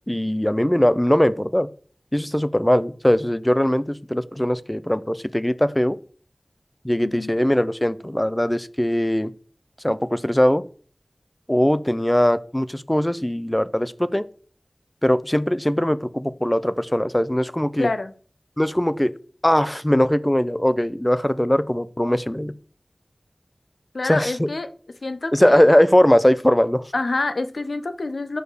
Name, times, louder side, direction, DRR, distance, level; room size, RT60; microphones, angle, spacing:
voice 1, 0.1-1.7 2.1-6.0 6.8-9.3 9.8-10.6 11.5-14.2 15.0-17.9 18.6-19.1 19.4-22.5 24.0-24.5 25.3-26.8, equal, 15° left, 16 dB, 0.4 m, -20 dB
voice 2, 7.0-7.3 17.8-18.1 23.9-24.7 25.0-25.7 26.9-28.4, left 2 dB, 85° left, 10 dB, 0.6 m, -27 dB
5.0 x 4.9 x 6.2 m, 0.43 s
wide cardioid pair, 55°, 0 cm